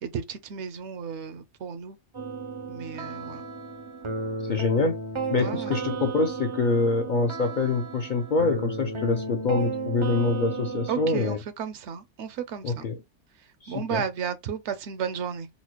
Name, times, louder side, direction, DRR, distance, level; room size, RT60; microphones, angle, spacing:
voice 1, 0.0-2.0 2.7-3.4 5.4-5.8 10.9-12.8 13.7-15.5, right 7 dB, 70° right, 0.8 m, -33 dB
sound 1, 2.1-11.3, right 3 dB, 45° right, 0.4 m, -33 dB
voice 2, 4.4-5.0 5.3-11.4 12.6-13.0 13.6-14.0, left 3 dB, 60° left, 0.5 m, -25 dB
4.0 x 2.1 x 2.9 m
omnidirectional pair, 1.3 m